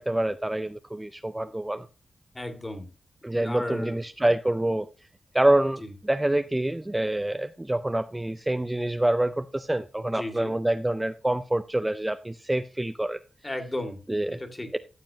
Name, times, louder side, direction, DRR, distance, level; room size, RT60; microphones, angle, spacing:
voice 1, 0.0-1.9 3.2-4.9 5.3-13.2 14.1-14.4 14.7-14.8, right 1 dB, 15° right, 0.5 m, -26 dB
voice 2, 2.3-2.9 3.3-4.0 5.8-5.9 10.1-10.5 13.4-14.0 14.3-14.7, left 1 dB, 20° left, 2.1 m, -34 dB
13.5 x 7.5 x 2.8 m
cardioid pair, 80°, 0 cm